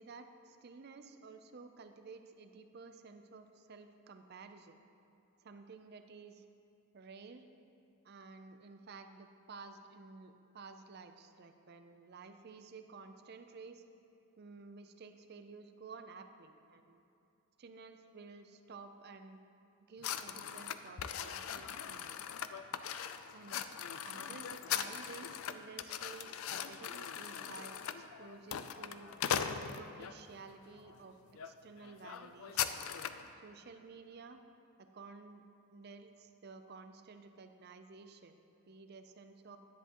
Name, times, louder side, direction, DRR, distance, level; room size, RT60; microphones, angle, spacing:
voice 1, 0.0-4.8 5.4-6.4 6.9-7.5 8.0-13.8 14.4-17.0 17.6-19.4 19.9-22.2 23.3-23.6 24.1-27.8 28.2-29.1 29.6-32.8 33.4-34.4 34.8-35.5 35.7-39.6, right 4 dB, 45° right, 8 dB, 0.5 m, -53 dB
sound 1, 20.0-30.2 30.8-31.0 31.3-31.5 31.8-33.3, left 8 dB, 70° left, 0.4 m, -40 dB
10.5 x 10.0 x 3.0 m, 2.8 s
head